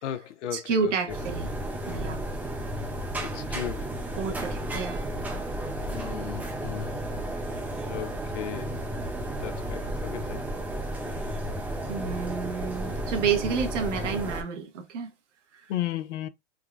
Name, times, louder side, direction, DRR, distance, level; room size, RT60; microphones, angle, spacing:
voice 1, 0.0-0.9 3.2-3.9 5.9-7.0 7.9-8.7 9.4-10.4 15.7-16.3, left 12 dB, 75° left, 0.6 m, -35 dB
voice 2, 0.5-1.5 1.9-2.2 4.1-5.1 11.9-15.1 15.5-15.6, right 6 dB, 80° right, 1.1 m, -30 dB
sound 1, 1.1-14.4, right 1 dB, 5° right, 0.3 m, -33 dB
3.6 x 2.2 x 2.3 m
hypercardioid pair, 120°, 36 cm